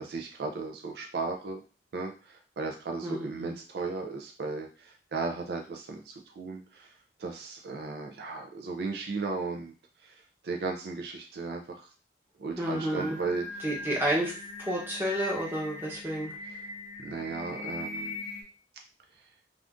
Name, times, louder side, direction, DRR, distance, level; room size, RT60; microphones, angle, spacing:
voice 1, 0.0-1.6 1.9-6.9 7.2-9.7 10.0-11.9 12.4-14.0 17.0-18.2, right 3 dB, 65° right, 3 dB, 0.4 m, -36 dB
voice 2, 3.0-3.6 12.6-13.2 13.6-16.3, right 1 dB, 15° right, -4 dB, 0.8 m, -31 dB
Singing, 12.5-18.4, left 2 dB, 40° left, 0.6 m, -40 dB
2.5 x 2.5 x 3.4 m, 0.35 s
head